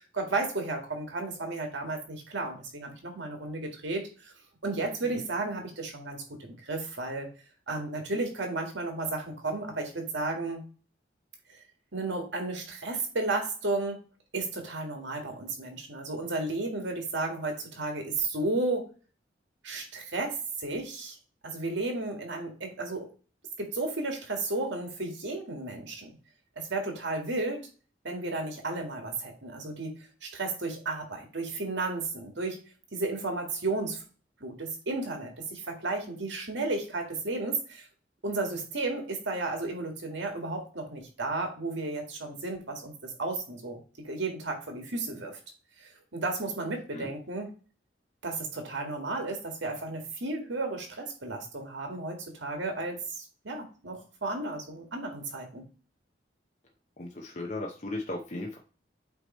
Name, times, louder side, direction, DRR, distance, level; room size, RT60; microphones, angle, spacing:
voice 1, 0.1-4.3 4.6-7.3 7.7-10.6 11.9-14.0 14.3-18.9 19.6-21.2 21.4-23.1 23.6-26.1 26.6-27.6 28.0-29.9 30.2-32.6 32.9-34.0 34.4-37.9 38.2-45.4 45.8-47.5 48.2-55.7, right 2 dB, 80° right, 3 dB, 1.8 m, -33 dB
voice 2, 57.0-58.6, left 2 dB, 40° left, 1 dB, 0.7 m, -36 dB
8.1 x 3.1 x 4.3 m, 0.38 s
head